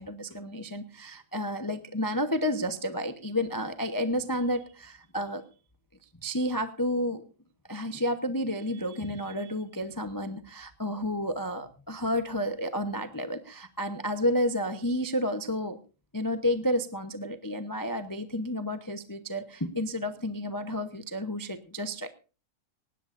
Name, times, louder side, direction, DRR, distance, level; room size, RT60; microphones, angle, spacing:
voice 1, 0.0-5.4 6.2-7.2 7.7-15.8 16.1-22.1, equal, 30° left, 8 dB, 0.3 m, -31 dB
19.0 x 17.0 x 2.6 m, 0.35 s
omnidirectional pair, 2.3 m